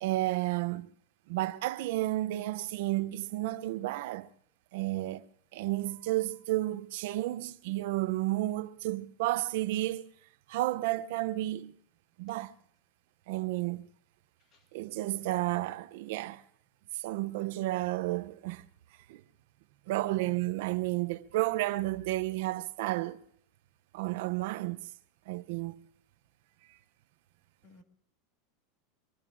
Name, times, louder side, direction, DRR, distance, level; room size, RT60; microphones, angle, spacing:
voice 1, 0.0-0.9 1.3-4.3 4.7-5.2 5.5-10.1 10.5-11.7 12.2-12.5 13.3-13.9 14.7-16.4 16.9-18.7 19.1-19.2 19.9-23.2 23.9-24.9 25.3-25.7, right 17 dB, 60° right, 0.5 m, -32 dB
voice 2, 15.2-15.6 27.6-27.8, left 3 dB, 35° left, 1.7 m, -56 dB
23.0 x 23.0 x 2.5 m
supercardioid pair, 170°, 0 cm